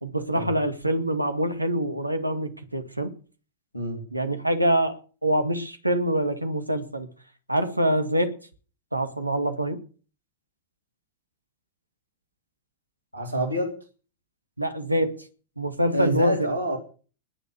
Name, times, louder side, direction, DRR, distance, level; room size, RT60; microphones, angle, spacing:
voice 1, 0.0-3.1 4.1-7.1 7.5-8.4 8.9-9.8 14.6-15.3 15.6-16.5, right 1 dB, 85° right, 2.0 m, -25 dB
voice 2, 3.7-4.0 13.1-13.7 15.9-16.8, right 1 dB, 85° left, 2.7 m, -27 dB
20.0 x 6.9 x 8.3 m
figure-of-eight pair, 90°, 0 cm